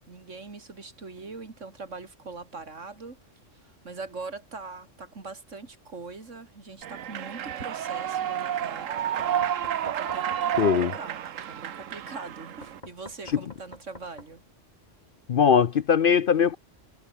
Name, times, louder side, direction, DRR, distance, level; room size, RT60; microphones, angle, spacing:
voice 1, 0.1-3.2 3.5-9.5 9.8-11.2 11.5-14.4, right 4 dB, 70° right, 3.1 m, -42 dB
Human voice / Clapping / Cheering, 6.8-12.8, right 10 dB, 90° right, 1.3 m, -30 dB
Knock, 9.0-10.7 12.6-14.3, left 1 dB, 35° left, 7.3 m, -46 dB
voice 2, 10.6-10.9 13.3-13.4 15.3-16.6, left 7 dB, 55° left, 0.7 m, -20 dB
omnidirectional pair, 1.3 m